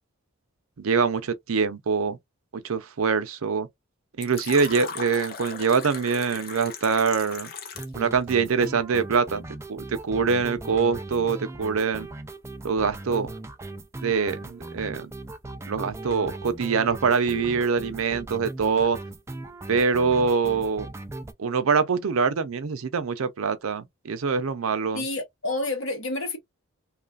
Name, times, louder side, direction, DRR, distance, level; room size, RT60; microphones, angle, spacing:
voice 1, 0.8-2.2 2.5-3.7 4.2-7.5 7.9-9.4 9.7-12.1 12.6-13.3 14.0-15.1 15.7-19.0 19.7-20.9 21.4-25.0, right 5 dB, 75° right, 0.6 m, -24 dB
Fill (with liquid), 4.2-8.0, left 6 dB, 45° left, 0.7 m, -38 dB
sound 1, 7.7-21.3, right 2 dB, 15° right, 0.3 m, -38 dB
voice 2, 24.9-26.4, left 2 dB, 60° left, 1.0 m, -29 dB
3.1 x 2.4 x 2.4 m
head